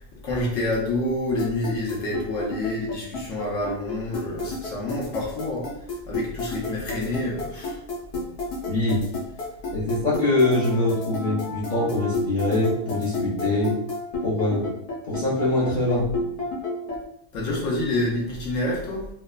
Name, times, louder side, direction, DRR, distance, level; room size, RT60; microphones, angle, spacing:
voice 1, 0.1-5.7 6.1-7.8 17.3-19.1, left 1 dB, 65° left, -3 dB, 0.9 m, -28 dB
sound 1, 1.4-17.0, left 2 dB, 80° left, 1.2 m, -31 dB
voice 2, 8.6-9.0 9.7-13.8 14.2-14.7 15.1-16.1, left 2 dB, 45° left, -9 dB, 0.6 m, -23 dB
3.0 x 2.0 x 2.3 m, 0.74 s
omnidirectional pair, 1.6 m